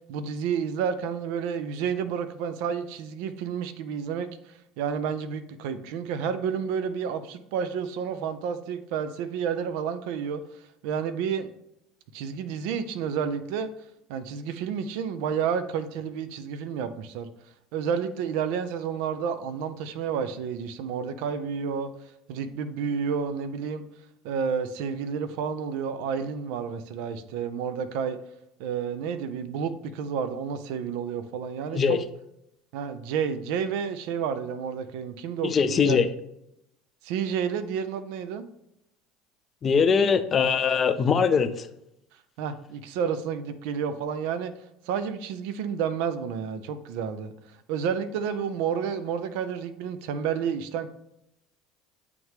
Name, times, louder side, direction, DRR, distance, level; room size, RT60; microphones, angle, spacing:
voice 1, 0.1-11.5 12.1-13.7 14.1-17.3 17.7-21.9 22.3-23.9 24.2-28.2 28.6-32.0 32.7-36.0 37.0-38.5 42.4-44.5 44.9-50.9, right 7 dB, 60° right, 11 dB, 0.5 m, -30 dB
voice 2, 35.4-36.1 39.6-41.7, left 6 dB, 35° left, 10 dB, 0.5 m, -22 dB
8.6 x 3.3 x 3.4 m, 0.81 s
figure-of-eight pair, 70°, 0 cm